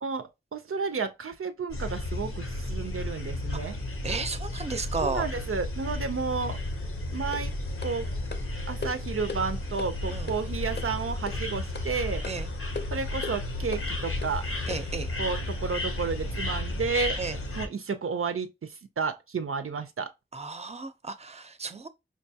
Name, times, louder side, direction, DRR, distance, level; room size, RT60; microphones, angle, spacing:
voice 1, 0.0-3.7 5.0-6.6 7.1-7.5 7.8-8.1 8.7-12.2 12.9-14.4 15.2-17.2 17.5-20.1, right 5 dB, 85° right, 0.5 m, -31 dB
sound 1, 1.7-17.7, left 1 dB, 90° left, 0.7 m, -33 dB
voice 2, 4.0-5.3 10.1-10.3 12.3-12.5 14.7-15.1 17.2-17.4 20.3-21.9, right 4 dB, 30° right, 0.5 m, -33 dB
sound 2, 7.3-15.0, left 5 dB, 55° left, 0.6 m, -42 dB
5.1 x 2.2 x 2.7 m
wide cardioid pair, 45°, 21 cm